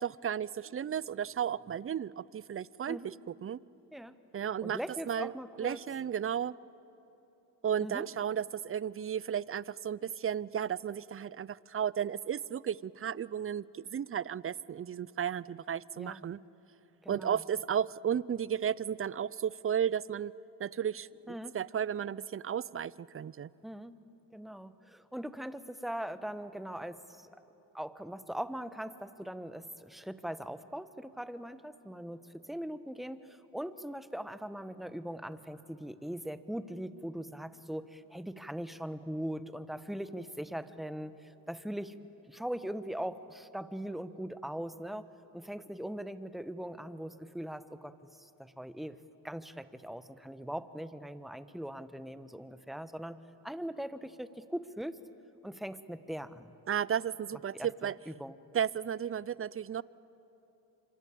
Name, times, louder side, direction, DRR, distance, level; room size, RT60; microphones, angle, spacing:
voice 1, 0.0-3.6 4.3-4.8 5.1-5.3 5.6-6.5 7.6-16.4 17.1-20.3 20.6-23.5 56.7-58.0 58.5-59.8, right 9 dB, 30° right, 22 dB, 0.5 m, -34 dB
voice 2, 4.6-5.8 7.8-8.1 16.0-16.3 17.0-17.4 21.3-21.6 23.6-24.0 24.3-27.3 27.7-41.9 42.3-45.1 45.3-49.0 49.2-53.2 53.4-55.0 55.4-56.5 57.5-58.4, equal, ahead, 13 dB, 1.2 m, -41 dB
26.5 x 24.5 x 8.6 m, 3.0 s
supercardioid pair, 55°, 48 cm